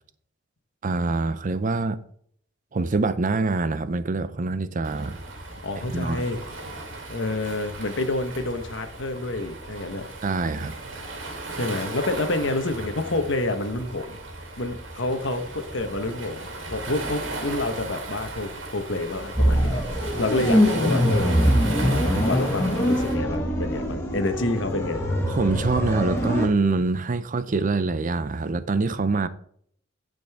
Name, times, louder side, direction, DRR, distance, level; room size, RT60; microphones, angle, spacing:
voice 1, 0.8-2.0 2.7-5.2 5.9-6.3 10.2-10.7 25.3-29.3, right 3 dB, 45° right, 0.6 m, -25 dB
Waves surf, 4.8-23.1, right 2 dB, 75° right, 2.7 m, -36 dB
voice 2, 5.5-6.4 7.1-10.1 11.5-14.2 14.6-21.3 22.2-25.0, left 2 dB, 70° left, 1.1 m, -28 dB
sound 1, 19.4-26.5, equal, 15° left, 2.0 m, -23 dB
15.5 x 5.3 x 3.5 m
head